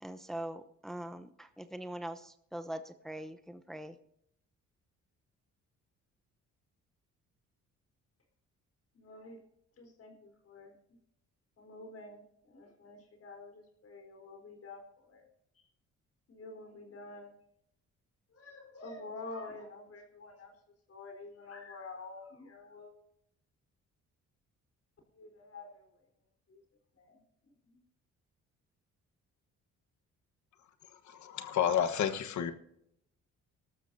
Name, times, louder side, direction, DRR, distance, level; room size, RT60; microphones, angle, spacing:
voice 1, 0.0-4.0, right 1 dB, ahead, 8 dB, 0.8 m, -42 dB
voice 2, 8.9-9.4 9.8-10.8 11.6-15.3 16.3-17.3 18.3-20.5 20.9-22.9 25.1-25.8 26.5-26.6 27.0-27.2 27.6-27.8, left 3 dB, 50° left, 3 dB, 4.1 m, -48 dB
voice 3, 31.1-32.5, left 9 dB, 70° left, 10 dB, 1.3 m, -30 dB
19.5 x 12.5 x 2.7 m, 0.74 s
cardioid pair, 90°, 30 cm